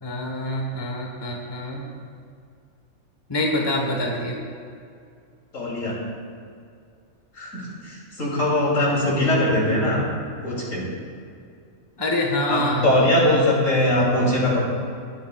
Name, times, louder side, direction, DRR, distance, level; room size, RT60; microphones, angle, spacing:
voice 1, 0.0-1.8 3.3-4.4 12.0-13.4, left 1 dB, 20° left, 0 dB, 1.1 m, -26 dB
voice 2, 5.5-5.9 7.4-10.0 10.4-10.9 12.5-14.6, left 1 dB, 70° left, -5 dB, 3.3 m, -21 dB
20.0 x 8.8 x 2.3 m, 2.4 s
omnidirectional pair, 1.4 m